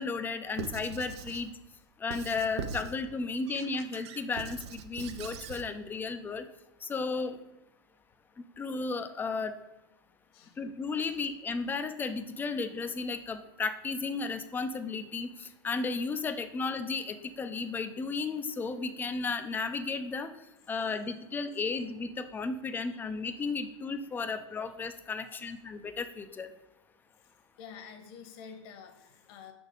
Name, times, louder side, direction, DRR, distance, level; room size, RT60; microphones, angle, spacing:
voice 1, 0.0-1.5 2.0-6.4 6.8-7.4 8.6-9.6 10.6-20.3 20.7-26.5, left 4 dB, 15° left, 9 dB, 0.5 m, -34 dB
Squeak / Writing, 0.5-1.5 2.1-3.0 3.5-5.7, right 6 dB, 60° right, 0.6 m, -41 dB
voice 2, 25.2-25.5 27.6-29.5, left 7 dB, 55° left, 7 dB, 1.2 m, -49 dB
6.0 x 4.3 x 5.1 m, 0.97 s
hypercardioid pair, 125°, 15 cm